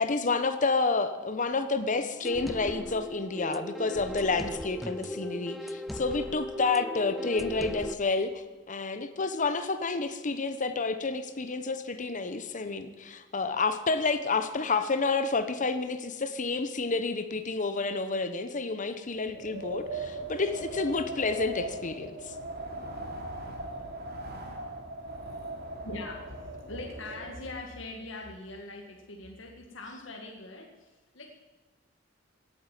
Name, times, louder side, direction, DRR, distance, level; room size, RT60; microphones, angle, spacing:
voice 1, 0.0-22.3, left 3 dB, 40° left, 9 dB, 1.0 m, -29 dB
sound 1, 2.2-8.0, equal, ahead, 0.5 m, -37 dB
Wind, 19.1-27.6, right 2 dB, 55° right, 3.0 m, -39 dB
voice 2, 25.8-31.3, left 2 dB, 70° left, 1 dB, 1.9 m, -42 dB
17.5 x 9.2 x 7.6 m, 1.3 s
head